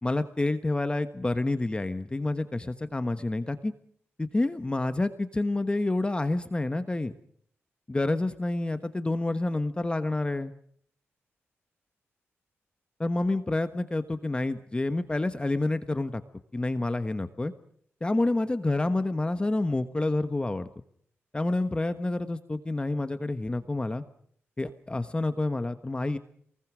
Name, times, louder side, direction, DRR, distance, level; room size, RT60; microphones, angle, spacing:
voice 1, 0.0-3.7 4.2-7.1 7.9-10.5 13.0-16.2 16.5-17.5 18.0-20.7 21.3-24.0 24.6-26.2, left 2 dB, 20° left, 10 dB, 1.2 m, -28 dB
27.5 x 20.5 x 6.3 m, 0.65 s
cardioid pair, 80°, 5 cm